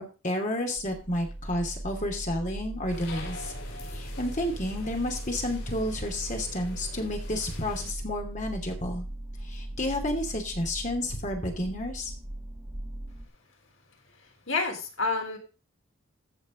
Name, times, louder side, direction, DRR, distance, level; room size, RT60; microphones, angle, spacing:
voice 1, 0.0-3.5 3.9-9.1 9.4-12.1, left 1 dB, 35° left, 3 dB, 2.7 m, -31 dB
sound 1, 0.8-13.3, right 1 dB, 25° right, 1.9 m, -39 dB
sound 2, 2.9-7.9, left 2 dB, 85° left, 4.8 m, -44 dB
voice 2, 14.5-15.4, left 3 dB, 65° left, 2 dB, 3.2 m, -28 dB
14.5 x 5.6 x 5.2 m, 0.33 s
head